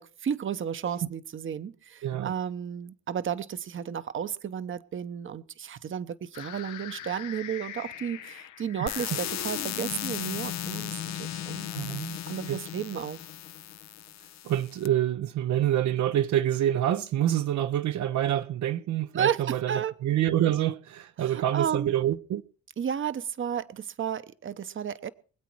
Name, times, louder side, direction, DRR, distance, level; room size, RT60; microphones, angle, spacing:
voice 1, 0.0-11.7 12.3-13.2 19.1-19.9 21.2-21.9 22.8-25.1, right 8 dB, 40° right, 0.9 m, -33 dB
voice 2, 2.0-2.3 11.7-12.2 12.5-12.6 14.4-19.7 20.0-22.4, right 12 dB, 70° right, 0.8 m, -26 dB
sound 1, 6.3-14.2, left 11 dB, 85° left, 1.0 m, -40 dB
sound 2, 8.9-14.9, left 12 dB, 60° left, 0.6 m, -37 dB
24.5 x 8.3 x 4.6 m
cardioid pair, 90°, 30 cm